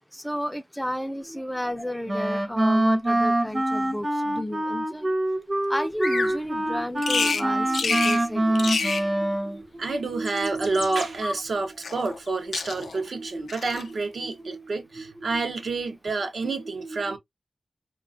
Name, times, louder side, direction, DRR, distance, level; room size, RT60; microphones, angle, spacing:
voice 1, 0.1-5.1 5.7-8.7 11.2-11.3, equal, 5° left, 0.3 m, -32 dB
Wind instrument woodwind instrument, 2.1-9.6, right 1 dB, 35° right, 0.6 m, -25 dB
Bird vocalization bird call bird song, 6.0-6.4 7.0-7.5 7.7-8.2 8.5-9.1 10.1-11.1 11.8-12.3 12.5-13.0 13.5-13.9, left 4 dB, 85° left, 0.3 m, -28 dB
voice 2, 7.3-8.1 8.3-17.2, right 3 dB, 75° right, 0.6 m, -29 dB
2.3 x 2.2 x 2.4 m
wide cardioid pair, 65°, 0 cm